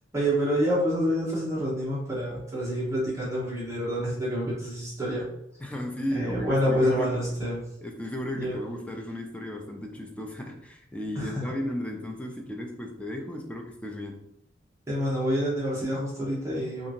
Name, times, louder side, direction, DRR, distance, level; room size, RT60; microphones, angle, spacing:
voice 1, 0.1-5.2 6.1-7.6 8.4-8.6 11.2-11.4 14.9-16.9, equal, 15° right, -8 dB, 1.0 m, -27 dB
voice 2, 5.6-7.2 7.8-14.3, left 1 dB, 5° left, 2 dB, 0.3 m, -35 dB
2.8 x 2.5 x 2.5 m, 0.76 s
head